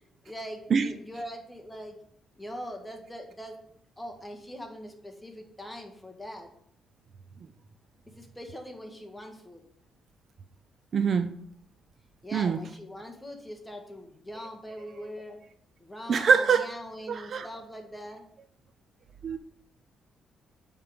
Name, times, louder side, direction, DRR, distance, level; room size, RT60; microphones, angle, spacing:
voice 1, 0.2-2.0 2.4-3.6 4.0-6.5 8.1-9.6 12.2-15.4 15.8-18.2, equal, 5° left, 1.5 m, -42 dB
voice 2, 10.9-11.3 12.3-12.6 16.1-16.7 17.1-17.5 19.2-19.4, right 6 dB, 50° right, 0.5 m, -23 dB
8.8 x 3.8 x 5.2 m
cardioid pair, 90°, 0 cm